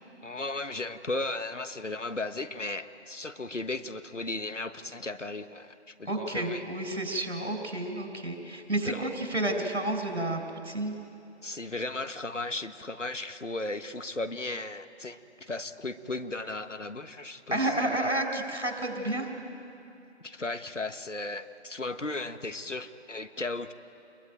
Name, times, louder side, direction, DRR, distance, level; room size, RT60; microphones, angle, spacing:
voice 1, 0.2-6.6 8.8-9.1 11.4-18.0 20.2-23.7, left 2 dB, 85° left, 10 dB, 1.5 m, -36 dB
voice 2, 6.0-10.9 17.5-19.3, right 1 dB, 65° right, 5 dB, 4.9 m, -30 dB
28.0 x 22.0 x 9.1 m, 2.7 s
figure-of-eight pair, 155°, 36 cm